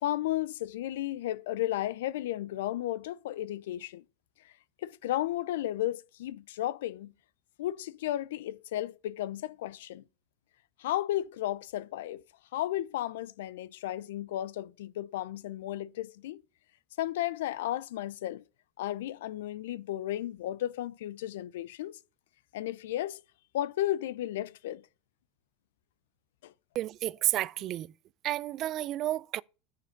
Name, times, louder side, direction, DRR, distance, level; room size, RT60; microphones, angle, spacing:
voice 1, 0.0-4.0 4.8-7.1 7.6-10.0 10.8-12.2 12.5-16.4 17.0-18.4 18.8-22.0 22.5-23.2 23.5-24.8 26.4-26.5, left 13 dB, 75° left, 0.5 m, -34 dB
voice 2, 26.7-27.9 28.2-29.4, right 14 dB, 45° right, 0.4 m, -31 dB
9.4 x 6.6 x 5.9 m
hypercardioid pair, 100°, 0 cm